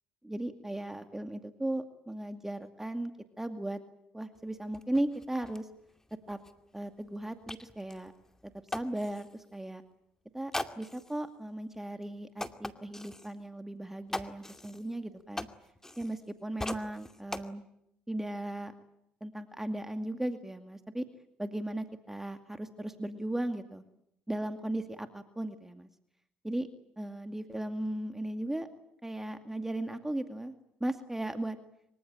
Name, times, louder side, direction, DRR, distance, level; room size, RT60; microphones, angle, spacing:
voice 1, 0.2-3.1 3.4-3.8 4.1-5.7 6.3-6.4 6.7-8.1 8.7-9.8 10.3-15.5 16.0-17.7 18.1-18.7 19.2-21.1 21.4-23.8 24.3-25.9 26.4-26.7 27.0-28.7 29.0-30.5 30.8-31.6, right 1 dB, 10° right, 7 dB, 2.3 m, -36 dB
sound 1, 4.3-4.4 4.7-9.4 10.5-11.2 11.7-11.8 12.4-13.3 14.1-16.3 16.6-17.5, left 1 dB, 10° left, 2.4 m, -41 dB
25.5 x 24.0 x 8.8 m, 0.77 s
supercardioid pair, 65°, 4 cm